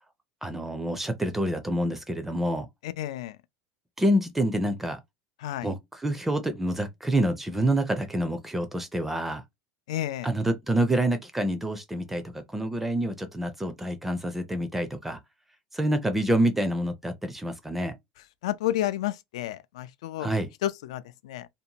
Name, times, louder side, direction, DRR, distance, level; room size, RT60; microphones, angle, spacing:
voice 1, 0.4-2.7 4.0-5.0 5.6-9.4 10.2-15.2 15.7-17.9 20.2-20.5, right 1 dB, 5° right, 0.4 m, -27 dB
voice 2, 2.8-3.4 5.4-5.7 9.9-10.3 18.4-20.3 20.6-21.5, left 13 dB, 90° left, 0.4 m, -31 dB
2.6 x 2.1 x 2.8 m
supercardioid pair, 140°, 3 cm